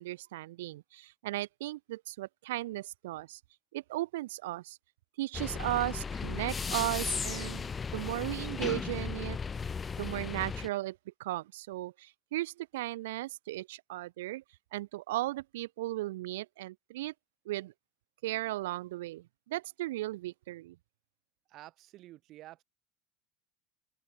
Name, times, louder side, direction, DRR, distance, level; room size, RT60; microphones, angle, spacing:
voice 1, 0.0-3.4 3.7-4.8 5.2-9.4 10.0-14.4 14.7-17.1 17.4-17.7 18.2-20.8, right 17 dB, 70° right, 0.9 m, -36 dB
sound 1, 5.3-10.7, left 5 dB, 25° left, 2.1 m, -36 dB
voice 2, 21.5-22.6, right 15 dB, 50° right, 4.3 m, -50 dB
open air
figure-of-eight pair, 70°, 0 cm